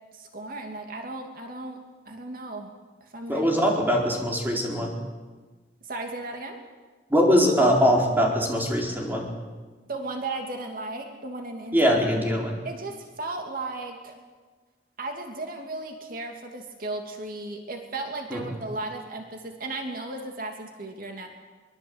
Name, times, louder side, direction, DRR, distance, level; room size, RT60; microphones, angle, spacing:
voice 1, 0.1-1.8 2.1-2.7 3.0-3.5 3.9-4.0 5.9-6.6 9.9-11.9 12.6-14.2 15.0-21.3, right 2 dB, 55° right, 3 dB, 2.6 m, -35 dB
voice 2, 3.3-4.9 7.1-9.3 11.7-12.5 18.3-18.4, equal, 10° right, -1 dB, 4.5 m, -22 dB
24.0 x 21.5 x 8.1 m, 1.4 s
head